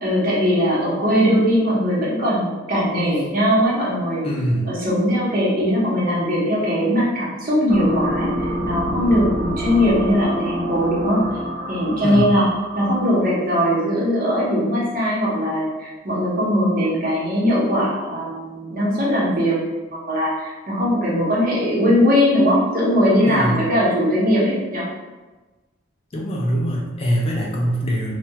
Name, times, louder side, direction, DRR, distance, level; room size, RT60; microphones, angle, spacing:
voice 1, 0.0-4.2 4.7-11.2 11.7-12.5 12.8-19.8 20.0-24.8, equal, 45° right, -6 dB, 0.8 m, -20 dB
voice 2, 4.2-4.7 12.0-12.4 23.2-23.6 26.1-28.1, equal, 30° left, -2 dB, 0.3 m, -23 dB
sound 1, 7.7-13.3, right 1 dB, 85° right, 0.6 m, -27 dB
2.3 x 2.1 x 2.7 m, 1.2 s
head